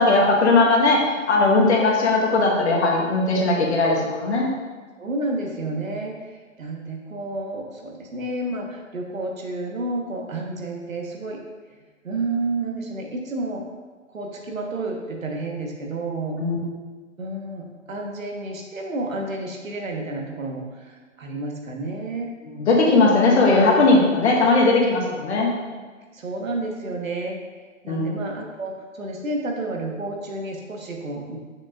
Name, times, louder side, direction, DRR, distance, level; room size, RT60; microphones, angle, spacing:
voice 1, 0.0-4.5 16.4-16.6 22.4-25.5 27.9-28.1, left 3 dB, 55° left, -1 dB, 1.4 m, -18 dB
voice 2, 5.0-11.4 12.0-13.6 14.1-16.4 17.2-22.3 25.5-25.8 26.1-27.4 27.8-31.4, right 2 dB, 75° right, 1 dB, 1.4 m, -30 dB
6.6 x 5.8 x 2.5 m, 1.4 s
figure-of-eight pair, 135°, 40 cm